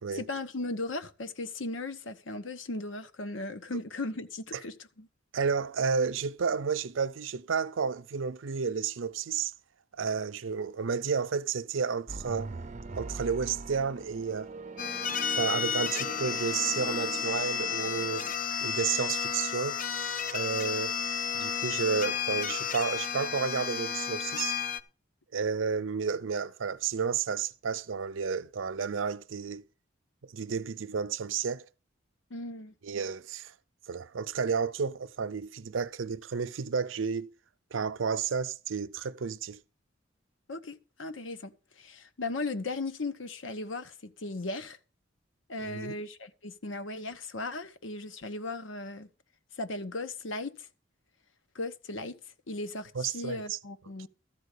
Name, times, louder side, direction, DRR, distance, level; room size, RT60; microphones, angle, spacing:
voice 1, 0.1-5.1 32.3-32.7 40.5-44.8 45.5-49.1 49.6-50.7 51.5-52.2 52.5-54.1, left 2 dB, 80° left, 1.0 m, -37 dB
voice 2, 5.3-9.5 10.0-12.5 12.9-14.5 15.3-18.3 18.6-19.8 20.3-21.0 21.3-24.6 25.3-29.6 30.2-31.7 32.8-33.5 33.9-37.3 37.7-39.6 45.6-46.0 52.9-53.6, right 6 dB, 85° right, 0.6 m, -31 dB
sound 1, 12.1-18.3, right 2 dB, 40° right, 0.7 m, -42 dB
sound 2, 14.8-24.8, left 7 dB, 45° left, 0.7 m, -32 dB
13.5 x 4.6 x 8.2 m
head